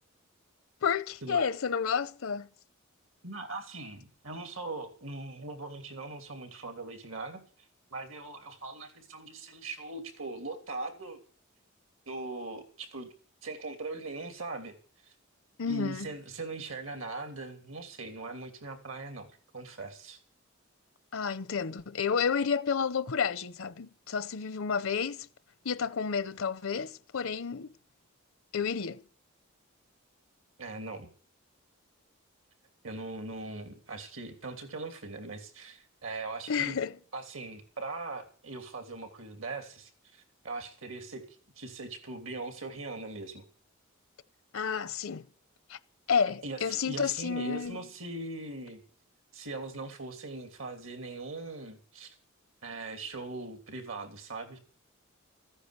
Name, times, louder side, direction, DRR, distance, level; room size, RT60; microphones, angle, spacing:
voice 1, 0.8-2.5 15.6-16.1 21.1-25.3 25.6-27.7 28.5-29.0 36.5-36.9 44.5-45.2 45.7-45.8 46.1-47.8, left 6 dB, 75° left, 0.7 m, -30 dB
voice 2, 3.2-7.4 7.9-11.2 12.1-13.1 13.4-14.7 15.1-15.2 15.7-19.3 19.5-20.2 30.6-31.1 32.8-36.8 37.1-41.2 41.5-43.4 46.4-48.8 49.3-52.2 52.6-54.6, right 2 dB, 70° right, 3.0 m, -40 dB
14.5 x 9.9 x 8.1 m
head